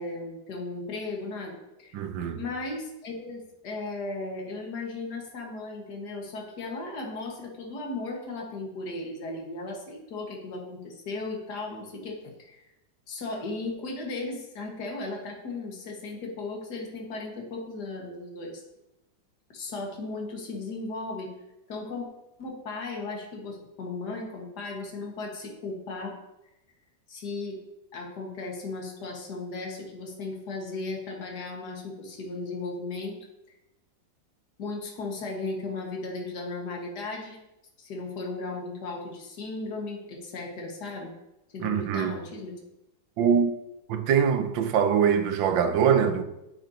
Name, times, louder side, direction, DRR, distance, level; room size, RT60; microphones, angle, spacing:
voice 1, 0.0-2.0 2.4-12.6 13.1-18.6 19.5-21.3 21.7-22.1 22.4-26.2 27.1-27.6 27.9-33.2 34.6-37.4 37.8-41.2 41.5-42.6, left 3 dB, 60° left, 2.2 m, -36 dB
voice 2, 1.9-2.4 41.6-42.2 43.2-43.5 43.9-46.2, right 7 dB, 85° right, 1.5 m, -23 dB
10.0 x 8.9 x 2.9 m
omnidirectional pair, 2.0 m